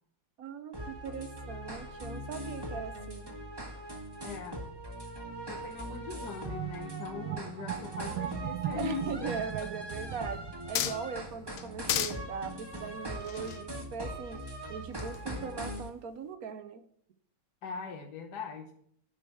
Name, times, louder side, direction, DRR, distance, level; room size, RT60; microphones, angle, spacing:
voice 1, 0.4-3.4 8.8-14.4 14.7-16.8, right 6 dB, 60° right, 9 dB, 1.0 m, -40 dB
sound 1, 0.7-15.9, equal, 15° right, 1.4 m, -41 dB
voice 2, 4.2-4.6 5.5-9.3 9.6-9.7 17.6-18.7, left 5 dB, 60° left, 4 dB, 1.4 m, -41 dB
sound 2, 6.4-11.7, right 13 dB, 80° right, 1.4 m, -39 dB
sound 3, 10.3-11.3 11.6-12.2 13.1-14.5 15.0-15.3, left 11 dB, 85° left, 1.6 m, -34 dB
11.0 x 5.1 x 8.3 m, 0.65 s
omnidirectional pair, 2.3 m